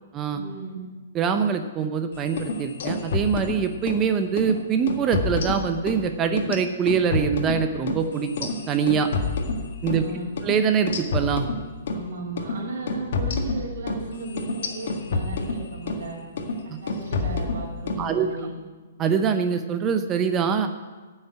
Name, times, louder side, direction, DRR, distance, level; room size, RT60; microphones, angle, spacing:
voice 1, 0.3-0.8 9.8-10.3 11.9-16.2 16.6-18.5, right 3 dB, 70° right, -3 dB, 2.9 m, -35 dB
voice 2, 1.1-9.1 9.8-10.0 10.4-11.5 16.7-16.8 18.0-18.3 19.0-20.7, right 6 dB, 20° right, 8 dB, 0.7 m, -24 dB
sound 1, 2.3-4.0 4.4-4.6 4.9-6.0 6.4-10.1 10.4-10.5 10.9-12.0 12.4-12.6 12.9-16.0 16.4-16.6 16.9-18.0, left 3 dB, 60° left, 1.6 m, -28 dB
12.0 x 6.5 x 8.9 m, 1.3 s
hypercardioid pair, 160°, 0 cm